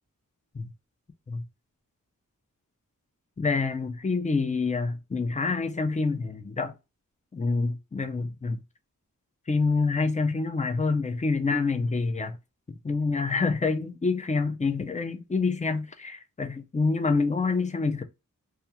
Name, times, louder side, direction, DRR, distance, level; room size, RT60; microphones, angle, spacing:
voice 1, 3.4-6.7 7.3-8.6 9.5-12.4 12.8-18.0, left 4 dB, 20° left, 0.4 m, -27 dB
2.3 x 2.3 x 2.8 m
wide cardioid pair, 55°, 34 cm